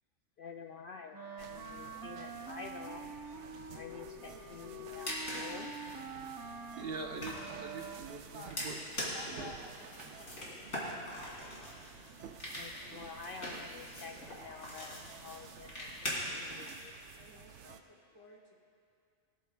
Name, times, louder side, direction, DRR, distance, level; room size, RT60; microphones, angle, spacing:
voice 1, 0.4-3.1 3.7-5.8 12.5-17.1 17.3-17.8 18.3-18.4, left 5 dB, 60° left, 4 dB, 0.6 m, -49 dB
Wind instrument woodwind instrument, 1.1-8.3, right 3 dB, 25° right, 0.6 m, -46 dB
sound 1, 1.4-17.8, right 8 dB, 90° right, 0.9 m, -53 dB
sound 2, 4.7-16.7, left 1 dB, 80° left, 3.3 m, -43 dB
voice 2, 6.4-8.8 9.3-9.5, right 4 dB, 60° right, 2 dB, 1.1 m, -44 dB
voice 3, 9.0-9.8 10.0-10.5 17.2-18.5, left 2 dB, 20° left, -3 dB, 1.6 m, -52 dB
21.5 x 13.5 x 2.3 m, 2.5 s
omnidirectional pair, 1.2 m